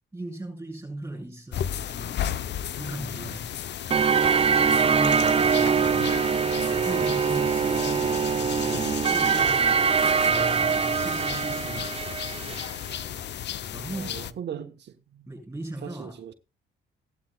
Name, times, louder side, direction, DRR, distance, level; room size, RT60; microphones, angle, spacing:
voice 1, 0.1-2.2 2.8-3.5 4.8-5.9 6.6-9.8 10.3-11.9 13.7-14.2 15.3-16.2, right 1 dB, 10° right, 7.4 m, -37 dB
sound 1, 1.5-14.3, left 10 dB, 60° left, 0.7 m, -34 dB
sound 2, 3.9-12.7, right 6 dB, 30° right, 0.6 m, -23 dB
voice 2, 13.9-15.3 15.8-16.3, right 9 dB, 60° right, 1.2 m, -39 dB
17.0 x 12.0 x 2.3 m
cardioid pair, 90°, 20 cm